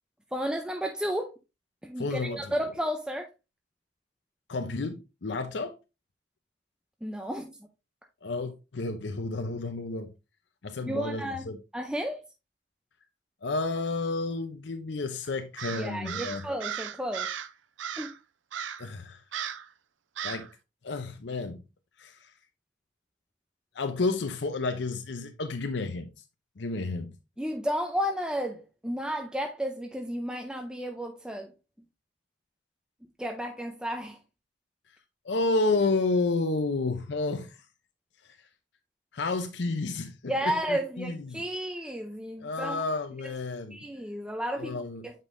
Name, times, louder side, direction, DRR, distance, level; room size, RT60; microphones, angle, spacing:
voice 1, 0.3-1.3 1.8-3.3 7.0-7.5 10.8-11.4 11.7-12.2 15.7-17.3 18.0-18.1 27.4-31.5 33.2-34.2 40.3-42.8 43.7-45.1, equal, 5° right, 0.5 m, -32 dB
voice 2, 2.0-2.5 4.5-5.8 8.2-10.1 10.6-11.6 13.4-16.5 18.8-19.2 20.2-20.5 20.8-21.6 22.0-22.3 23.7-26.1 26.6-27.1 35.2-37.6 38.2-38.4 39.1-41.4 42.4-43.8 44.6-45.1, left 3 dB, 70° left, 0.6 m, -31 dB
Crow, 15.6-17.5 17.8-18.2 18.5-18.9 19.3-19.7 20.2-20.5, right 8 dB, 85° right, 0.6 m, -36 dB
8.2 x 5.2 x 2.6 m
head